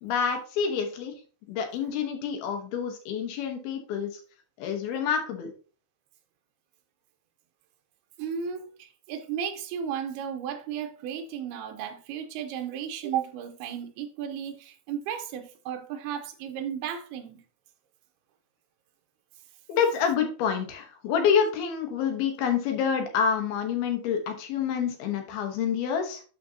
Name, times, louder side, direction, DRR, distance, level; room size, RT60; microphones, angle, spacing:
voice 1, 0.0-1.1 1.5-4.2 4.6-5.5 19.7-26.2, left 7 dB, 75° left, 3.1 m, -27 dB
voice 2, 8.2-17.4, right 8 dB, 90° right, 2.8 m, -34 dB
12.0 x 4.2 x 2.8 m
omnidirectional pair, 4.5 m